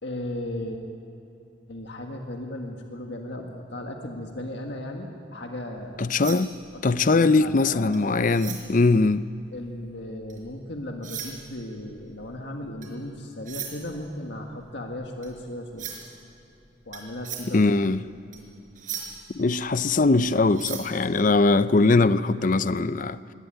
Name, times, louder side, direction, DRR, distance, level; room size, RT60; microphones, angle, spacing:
voice 1, 0.0-0.8 1.7-6.1 6.7-7.9 9.5-16.0 16.8-17.7, left 1 dB, 60° left, 1.8 m, -36 dB
sound 1, 5.8-10.5 10.9-21.9, right 8 dB, 40° right, 4.7 m, -40 dB
voice 2, 6.0-6.5 6.8-9.3 17.5-18.0 19.3-23.2, left 3 dB, 40° left, 0.5 m, -21 dB
23.0 x 18.0 x 9.1 m
head